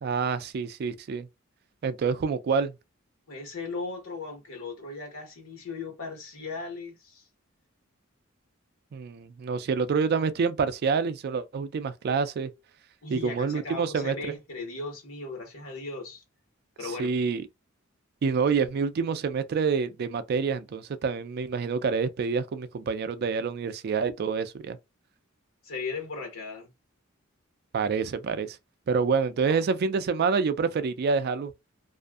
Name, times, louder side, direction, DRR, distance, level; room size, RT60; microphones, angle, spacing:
voice 1, 0.0-1.3 1.8-2.7 8.9-12.5 13.1-14.3 16.8-17.5 18.2-24.8 27.7-28.6 28.9-31.5, right 5 dB, 50° right, 0.3 m, -27 dB
voice 2, 3.3-7.2 13.0-16.2 16.8-17.1 25.6-26.7 29.5-29.6, left 3 dB, 80° left, 1.1 m, -37 dB
2.5 x 2.4 x 2.3 m
head